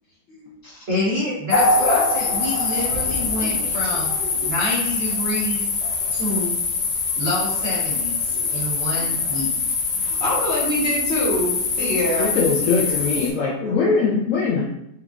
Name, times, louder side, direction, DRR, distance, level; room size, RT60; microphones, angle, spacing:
voice 1, 0.9-4.1 4.4-5.6 6.1-6.6 7.2-9.5, left 1 dB, 45° right, -8 dB, 0.9 m, -27 dB
sound 1, 1.5-13.3, left 4 dB, 70° left, 1.1 m, -23 dB
voice 2, 3.0-3.8 4.3-4.4 8.3-8.6 8.9-9.7 10.0-12.3 12.6-14.0, equal, 40° left, -6 dB, 1.1 m, -28 dB
voice 3, 12.2-14.6, left 4 dB, 90° left, -5 dB, 0.7 m, -21 dB
4.8 x 2.4 x 2.4 m, 0.79 s
omnidirectional pair, 2.0 m